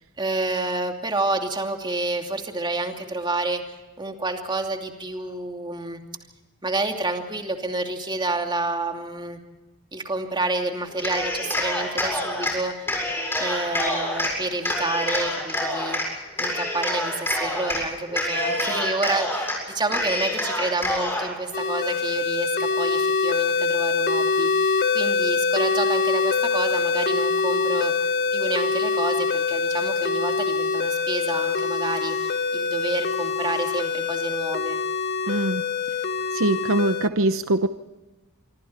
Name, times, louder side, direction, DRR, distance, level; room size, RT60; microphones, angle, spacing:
voice 1, 0.2-6.0 6.6-9.4 9.9-12.9 13.4-16.0 16.4-27.9 28.3-34.8, right 2 dB, 20° right, 3 dB, 2.7 m, -29 dB
Cheering, 10.9-12.5 12.9-14.3 14.6-16.1 16.4-17.8 18.1-19.6 19.9-21.3, left 1 dB, 10° left, 7.2 m, -26 dB
sound 1, 21.5-37.1, left 4 dB, 50° left, 1.3 m, -24 dB
voice 2, 35.3-35.6 36.3-37.7, right 2 dB, 65° right, 10 dB, 0.9 m, -22 dB
26.0 x 25.0 x 4.4 m, 1.1 s
head